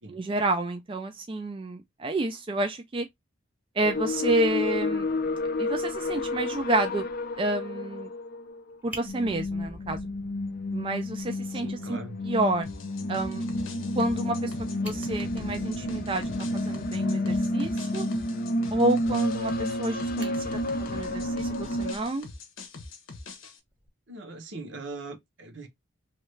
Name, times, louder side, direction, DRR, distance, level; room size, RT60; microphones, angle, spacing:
voice 1, 0.1-3.1 3.8-5.1 5.6-7.0 7.4-8.1 8.8-10.0 10.7-12.0 12.2-12.7 13.1-13.4 14.0-14.5 14.8-16.2 16.5-18.1 18.7-22.3, right 2 dB, 25° right, 0.3 m, -29 dB
sound 1, 3.8-21.9, left 1 dB, 50° left, 0.5 m, -30 dB
Fire, 8.5-8.6 8.9-10.8 11.2-11.3 11.7-11.8 12.1-12.2 14.4-14.5 14.7-16.5 19.3-19.8 20.2-22.4 23.7-23.9, equal, 10° right, 0.8 m, -47 dB
voice 2, 11.6-12.2 24.1-25.7, right 3 dB, 65° right, 0.8 m, -40 dB
sound 2, 12.6-23.6, left 3 dB, 80° left, 0.7 m, -44 dB
3.1 x 2.4 x 3.1 m
head